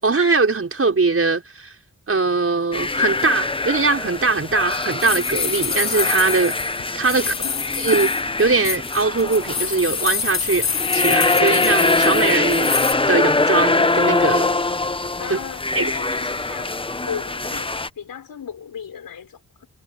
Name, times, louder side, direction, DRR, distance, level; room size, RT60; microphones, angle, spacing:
voice 1, 0.0-1.7 2.1-6.6 6.9-7.3 7.8-10.7 10.9-12.7 13.1-14.5 15.3-15.4 15.8-15.9, right 4 dB, 40° right, 5.5 m, -21 dB
sound 1, 2.7-17.9, left 3 dB, 15° left, 0.8 m, -23 dB
sound 2, 4.0-12.9, left 6 dB, 50° left, 1.5 m, -27 dB
voice 2, 7.2-7.6 15.2-16.8 17.0-19.7, left 8 dB, 85° left, 6.4 m, -35 dB
cardioid pair, 80°, 34 cm